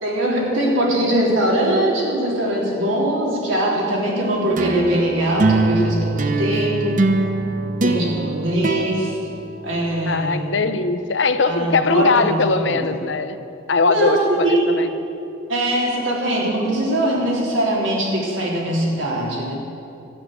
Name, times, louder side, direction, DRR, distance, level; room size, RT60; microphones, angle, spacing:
voice 1, 0.0-7.1 7.8-9.2 9.6-10.5 11.5-12.9 13.9-14.8 15.5-19.5, right 1 dB, 85° right, -4 dB, 3.5 m, -21 dB
sound 1, 4.6-10.2, right 2 dB, 40° right, 0.7 m, -22 dB
voice 2, 10.1-13.4 13.7-14.9, left 4 dB, 70° left, 10 dB, 0.7 m, -20 dB
13.0 x 9.9 x 7.9 m, 2.8 s
head